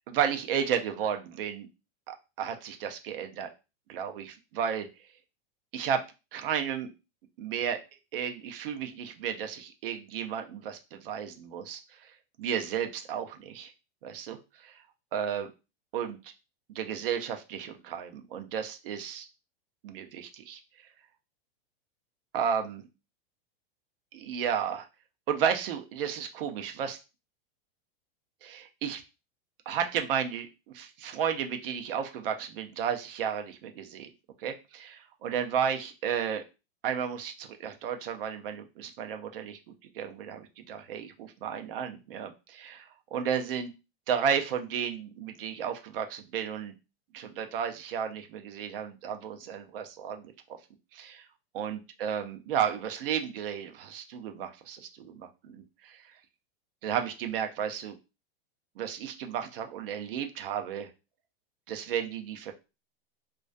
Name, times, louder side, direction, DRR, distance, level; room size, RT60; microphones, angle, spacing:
voice 1, 0.1-1.7 2.1-3.5 3.9-4.9 5.7-6.0 6.3-6.9 7.4-7.8 8.1-12.1 12.4-13.7 14.0-14.8 15.1-15.5 15.9-16.3 16.7-19.3 19.8-20.6 22.3-22.9 24.1-24.9 25.3-27.0 28.4-29.0 29.7-34.1 34.4-36.4 36.8-43.7 44.1-46.7 47.1-50.3 50.9-51.3 51.5-56.0 56.8-57.9 58.8-60.9 61.7-62.5, right 8 dB, 65° right, 6 dB, 0.5 m, -33 dB
2.3 x 2.2 x 2.4 m, 0.28 s
supercardioid pair, 170°, 30 cm